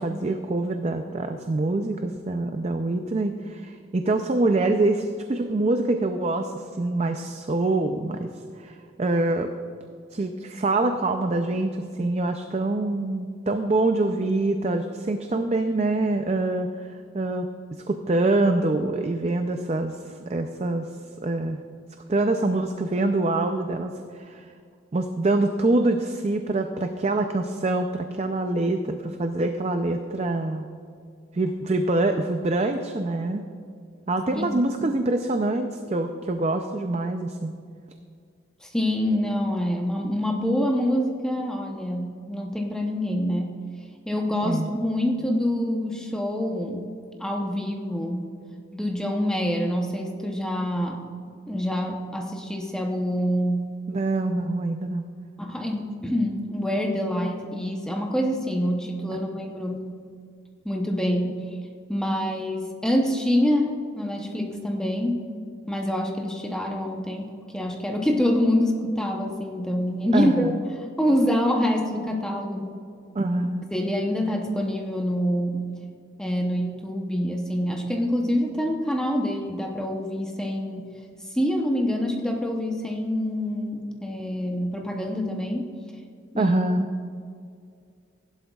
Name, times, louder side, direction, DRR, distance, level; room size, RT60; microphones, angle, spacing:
voice 1, 0.0-8.3 8.6-9.5 10.1-16.9 17.1-17.5 17.9-20.9 21.2-21.6 22.1-24.5 24.9-30.7 31.3-33.4 34.1-37.5 44.4-44.7 53.9-55.0 59.3-59.4 70.1-70.6 73.1-73.7 86.4-86.9, right 2 dB, 30° right, 6 dB, 0.4 m, -25 dB
voice 2, 38.6-43.5 44.1-46.9 47.2-48.2 48.7-51.0 51.5-53.7 55.4-59.9 60.6-61.6 61.9-65.3 65.7-70.5 71.0-72.8 73.7-75.7 76.2-80.9 81.3-85.7 86.3-86.5, equal, 5° left, 1 dB, 0.7 m, -26 dB
15.5 x 11.5 x 2.3 m, 2.2 s
head